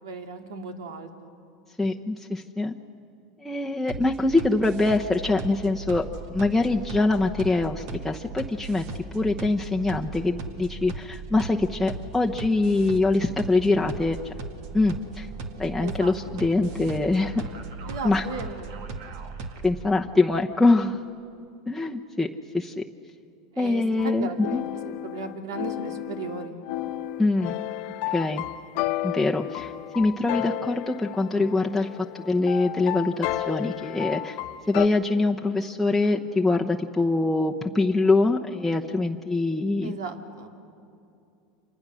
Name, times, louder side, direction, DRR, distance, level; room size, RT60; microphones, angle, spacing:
voice 1, 0.0-1.3 15.8-16.2 17.9-18.9 23.5-26.6 39.8-40.5, right 4 dB, 85° right, 4 dB, 2.5 m, -36 dB
voice 2, 1.8-2.7 3.4-6.0 6.3-8.8 9.1-14.3 14.7-15.3 15.6-17.3 18.0-18.3 19.6-21.0 21.7-22.3 22.5-22.8 23.6-24.6 27.2-27.5 28.1-28.4 29.0-31.9 32.1-34.4 34.7-39.9, left 2 dB, 5° left, -1 dB, 0.9 m, -24 dB
sound 1, 3.9-19.9, right 3 dB, 65° right, 2.2 m, -37 dB
sound 2, 24.0-34.9, left 15 dB, 60° left, 0.9 m, -32 dB
30.0 x 26.5 x 6.4 m, 2.6 s
supercardioid pair, 110°, 2 cm